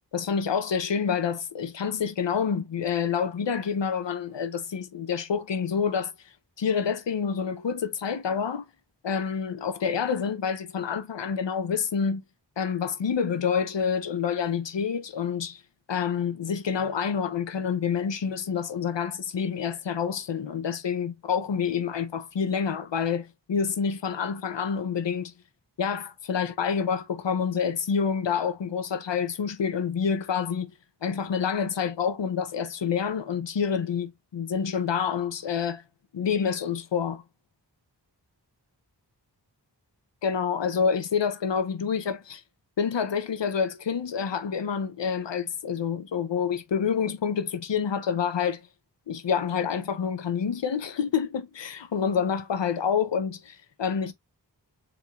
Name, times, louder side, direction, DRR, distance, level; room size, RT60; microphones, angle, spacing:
voice 1, 0.1-6.1 6.6-8.6 9.0-12.2 12.6-15.6 15.9-25.3 25.8-30.7 31.0-35.8 36.1-37.2 40.2-42.4 42.8-48.6 49.1-54.1, left 6 dB, 80° left, 0.7 m, -28 dB
5.0 x 3.2 x 2.3 m
wide cardioid pair, 45°, 43 cm